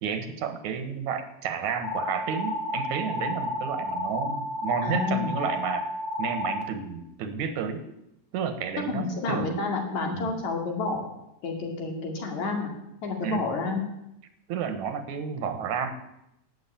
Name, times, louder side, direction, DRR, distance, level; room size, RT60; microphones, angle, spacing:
voice 1, 0.0-5.9 6.2-7.8 8.3-9.6 10.1-10.3 13.2-13.4 14.5-15.9, right 7 dB, 80° right, 9 dB, 2.7 m, -31 dB
sound 1, 1.8-6.6, left 1 dB, 35° left, 2.1 m, -31 dB
voice 2, 4.8-5.3 8.9-11.0 11.4-12.7 13.0-13.8, left 4 dB, 75° left, 3 dB, 3.7 m, -29 dB
11.5 x 8.8 x 8.8 m, 0.84 s
omnidirectional pair, 3.4 m